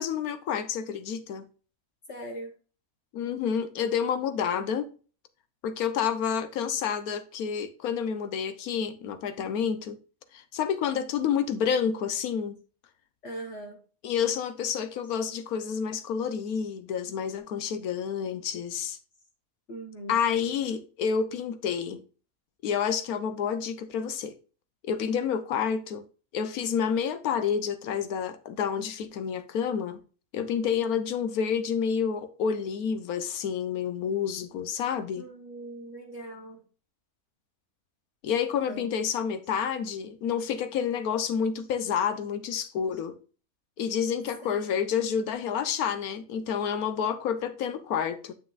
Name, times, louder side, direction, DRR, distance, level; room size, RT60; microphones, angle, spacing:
voice 1, 0.0-1.5 3.1-4.9 5.6-10.0 10.3-12.6 14.0-19.0 20.1-22.0 22.6-24.3 24.9-26.0 26.3-30.0 30.3-35.2 38.2-43.2 43.8-48.3, left 7 dB, 85° left, 1.3 m, -29 dB
voice 2, 2.1-2.5 13.2-13.8 19.7-20.2 35.2-36.6 38.7-38.9 44.4-44.9, right 1 dB, 55° left, 1.8 m, -40 dB
9.3 x 5.9 x 2.4 m
omnidirectional pair, 1.5 m